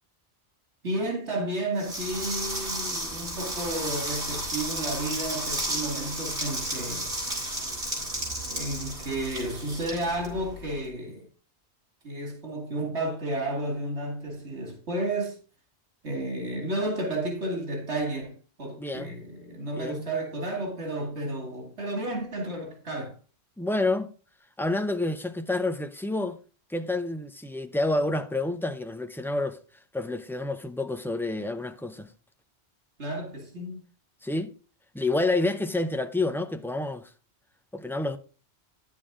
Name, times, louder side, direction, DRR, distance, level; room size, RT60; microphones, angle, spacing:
voice 1, 0.8-7.1 8.5-11.3 12.0-15.4 16.0-23.1 33.0-33.8, right 1 dB, 85° right, 2.6 m, -32 dB
sound 1, 1.8-10.8, right 1 dB, 55° right, 4.3 m, -33 dB
voice 2, 18.8-19.1 19.8-20.1 23.6-24.1 24.6-26.4 26.7-29.6 29.9-32.1 34.2-34.5 34.9-37.1 37.7-38.2, left 2 dB, 5° left, 0.3 m, -28 dB
10.5 x 7.1 x 3.7 m
omnidirectional pair, 1.1 m